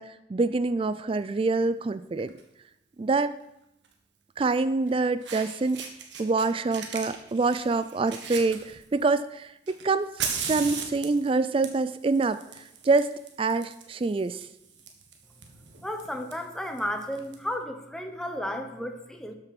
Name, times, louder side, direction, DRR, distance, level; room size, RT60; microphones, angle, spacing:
voice 1, 0.0-2.3 3.0-3.3 4.4-5.8 6.2-13.1 13.4-14.5, right 3 dB, 30° right, 14 dB, 0.3 m, -26 dB
Fire, 2.2-2.4 3.8-3.9 4.9-5.0 5.2-6.4 6.7-9.1 9.7-17.3, right 6 dB, 85° right, 1.6 m, -38 dB
voice 2, 15.8-19.3, equal, 5° left, 5 dB, 1.0 m, -33 dB
12.5 x 6.7 x 6.0 m, 0.85 s
head